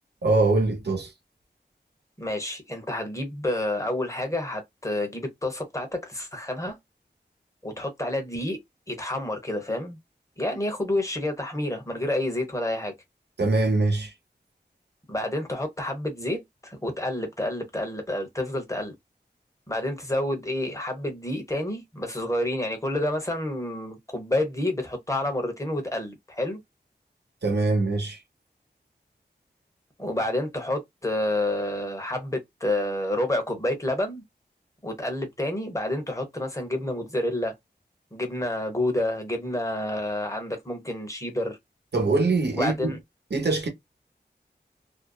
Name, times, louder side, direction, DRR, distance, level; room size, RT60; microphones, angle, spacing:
voice 1, 0.2-1.1 13.4-14.1 27.4-28.2 41.9-42.9 43.3-43.7, right 3 dB, 70° right, 0.9 m, -23 dB
voice 2, 2.2-6.8 7.6-8.6 8.9-10.0 10.4-12.9 15.1-18.9 19.7-26.6 30.0-34.2 34.8-37.5 38.1-41.6 42.6-43.0, left 1 dB, 15° left, 1.0 m, -29 dB
2.6 x 2.2 x 2.3 m
wide cardioid pair, 75°, 18 cm